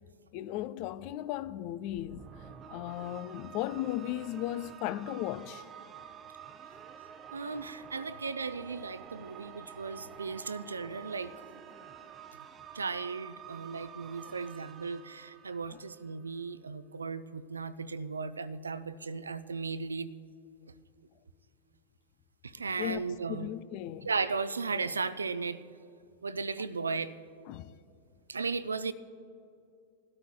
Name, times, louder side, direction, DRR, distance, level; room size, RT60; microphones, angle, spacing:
voice 1, 0.3-2.3 2.7-5.6 14.3-14.4 15.7-15.8 22.8-23.0 23.3-24.1 27.5-27.7, left 13 dB, 45° left, 0.4 m, -36 dB
sound 1, 1.9-16.3, right 8 dB, 25° right, 0.7 m, -49 dB
voice 2, 7.3-11.3 12.7-20.1 22.4-23.5 24.0-25.6 26.2-27.1 28.3-28.9, right 4 dB, 75° right, 0.4 m, -36 dB
20.5 x 13.0 x 2.2 m
figure-of-eight pair, 90°, 0 cm